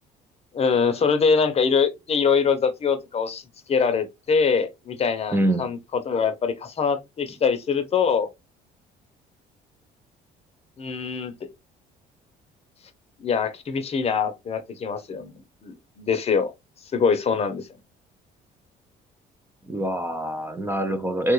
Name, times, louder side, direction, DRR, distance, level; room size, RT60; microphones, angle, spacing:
voice 1, 0.5-3.4 3.7-8.3 10.8-11.3 13.2-16.5 16.9-17.7, left 5 dB, 35° left, 0.7 m, -23 dB
voice 2, 5.3-5.6 19.7-21.3, right 1 dB, 15° right, 0.4 m, -24 dB
3.3 x 2.3 x 3.1 m
cardioid pair, 110°, 17 cm